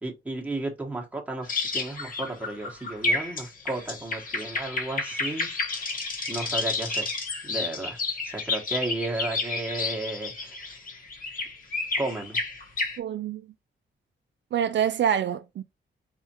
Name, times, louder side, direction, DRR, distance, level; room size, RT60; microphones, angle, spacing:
voice 1, 0.0-5.5 5.7-6.0 6.3-7.1 7.4-10.7 12.0-12.4, right 2 dB, 5° right, 1.1 m, -33 dB
sound 1, 1.4-13.0, left 3 dB, 40° left, 1.2 m, -31 dB
voice 2, 13.0-13.4 14.5-15.6, right 9 dB, 60° right, 0.4 m, -26 dB
4.5 x 3.5 x 2.8 m
wide cardioid pair, 170°, 21 cm